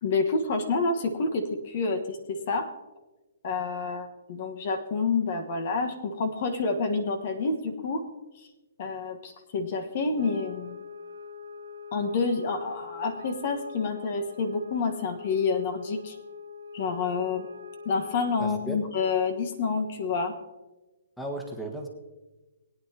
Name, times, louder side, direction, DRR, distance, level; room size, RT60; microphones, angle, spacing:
voice 1, 0.0-2.7 3.4-8.0 8.8-10.8 11.9-16.2 16.7-17.5 17.8-20.3, left 4 dB, 50° left, 5 dB, 1.4 m, -28 dB
sound 1, 10.1-18.5, left 4 dB, 80° right, 1.1 m, -43 dB
voice 2, 18.4-18.8 21.2-21.9, right 1 dB, 5° left, 2 dB, 1.5 m, -35 dB
21.0 x 9.4 x 2.9 m, 1.1 s
hypercardioid pair, 140°, 0 cm